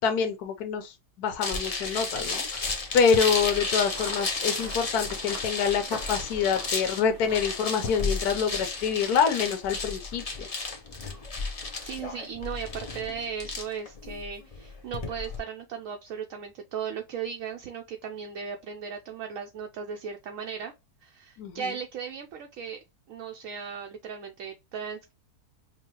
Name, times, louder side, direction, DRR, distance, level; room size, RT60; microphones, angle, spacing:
voice 1, 0.0-0.9 1.2-10.5 21.4-21.6, left 6 dB, 75° left, 1.2 m, -26 dB
sound 1, 1.4-15.4, left 3 dB, 35° left, 0.6 m, -33 dB
sound 2, 2.9-8.1, right 2 dB, 35° right, 0.8 m, -44 dB
voice 2, 11.8-20.7 21.0-22.8 23.1-25.1, right 7 dB, 70° right, 0.9 m, -37 dB
5.4 x 2.3 x 2.9 m
omnidirectional pair, 1.6 m